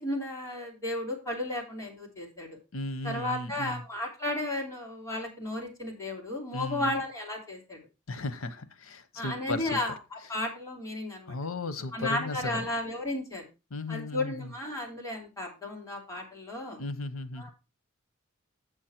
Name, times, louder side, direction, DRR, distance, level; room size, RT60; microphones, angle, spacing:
voice 1, 0.0-2.6 3.0-7.8 9.1-11.4 11.9-13.5 13.9-16.8 17.3-17.5, left 1 dB, 15° left, -2 dB, 3.2 m, -34 dB
voice 2, 2.7-3.8 6.5-6.9 8.1-9.8 11.3-12.7 13.7-14.5 16.8-17.5, left 2 dB, 80° left, 12 dB, 0.9 m, -35 dB
8.3 x 6.4 x 4.4 m, 0.28 s
head